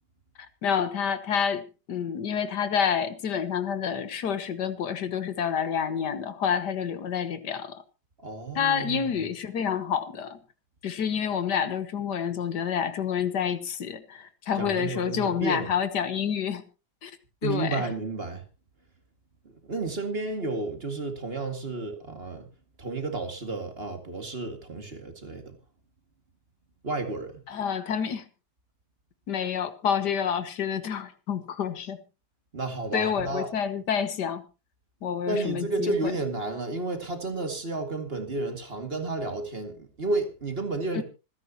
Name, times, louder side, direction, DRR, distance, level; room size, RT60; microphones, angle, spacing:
voice 1, 0.6-7.8 8.6-10.4 10.8-16.6 17.0-17.1 17.4-17.9 27.5-28.3 29.3-32.0 32.9-34.4 35.0-35.9 40.9-41.0, left 7 dB, 85° left, 1.8 m, -28 dB
voice 2, 8.2-9.1 14.6-15.7 17.4-18.4 19.6-22.5 22.8-25.6 26.8-27.4 32.5-33.5 35.3-41.0, right 2 dB, 35° right, 2.4 m, -31 dB
26.0 x 10.0 x 2.9 m
omnidirectional pair, 1.8 m